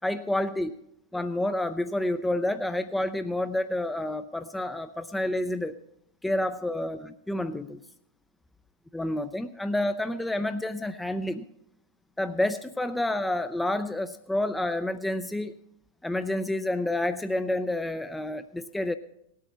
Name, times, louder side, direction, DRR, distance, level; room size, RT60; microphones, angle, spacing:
voice 1, 0.0-0.7 1.1-5.7 6.2-7.8 8.9-11.4 12.2-15.5 16.0-18.9, left 1 dB, 5° left, 10 dB, 0.5 m, -29 dB
18.0 x 8.5 x 5.6 m, 0.78 s
figure-of-eight pair, 90°, 0 cm